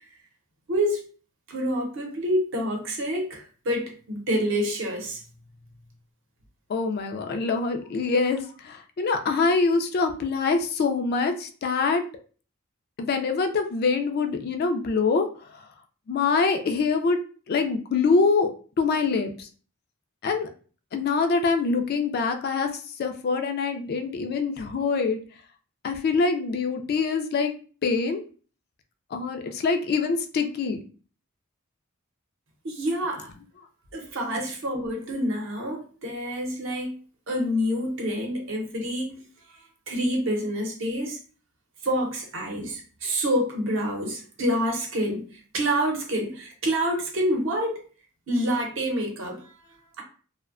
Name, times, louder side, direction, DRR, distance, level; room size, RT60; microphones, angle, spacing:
voice 1, 0.7-1.0 1.5-5.2 32.6-33.3 33.9-36.9 37.3-39.3 39.9-41.2 41.8-47.7 48.3-49.5, equal, 65° right, 1 dB, 0.7 m, -27 dB
voice 2, 6.7-12.0 13.0-15.3 16.1-17.2 17.5-18.5 18.8-19.5 20.2-20.5 20.9-22.7 23.0-25.2 25.8-27.5 27.8-28.2 29.1-30.8, left 4 dB, 45° left, 6 dB, 0.3 m, -24 dB
2.6 x 2.1 x 2.4 m, 0.39 s
head